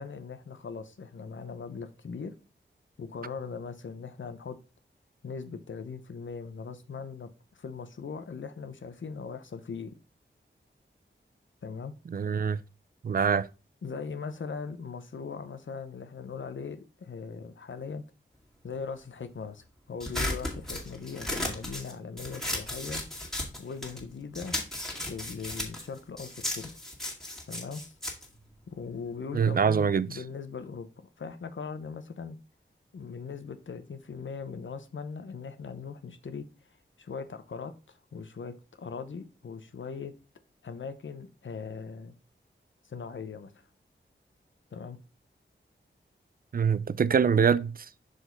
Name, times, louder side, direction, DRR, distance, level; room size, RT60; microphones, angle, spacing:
voice 1, 0.0-2.4 3.0-4.6 5.2-7.3 7.5-10.0 11.6-11.9 13.8-18.0 18.6-23.0 23.6-24.6 25.1-26.7 27.5-27.9 28.7-32.4 32.9-36.5 37.0-40.1 40.6-42.2 42.8-43.5 44.7-45.0, left 5 dB, 70° left, 0.8 m, -40 dB
voice 2, 12.1-12.6 13.0-13.5 29.3-30.1 46.5-47.8, right 6 dB, 45° right, 0.4 m, -24 dB
sound 1, 20.0-24.1 24.3-29.2, left 1 dB, ahead, 2.0 m, -35 dB
6.3 x 4.9 x 3.9 m
wide cardioid pair, 90°, 20 cm